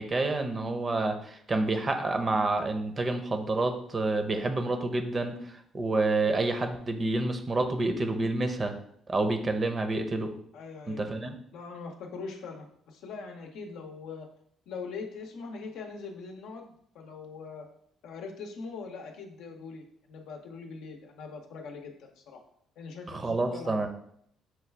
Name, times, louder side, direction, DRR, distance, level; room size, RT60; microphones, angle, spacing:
voice 1, 0.0-5.4 5.7-8.7 9.1-10.3 10.9-11.4 23.1-23.9, right 2 dB, 35° right, 6 dB, 0.7 m, -28 dB
voice 2, 10.5-11.0 11.5-14.3 14.7-16.7 16.9-17.7 18.0-22.4 22.8-23.9, left 4 dB, 80° left, 3 dB, 0.6 m, -42 dB
5.9 x 2.3 x 3.3 m, 0.67 s
supercardioid pair, 70°, 0 cm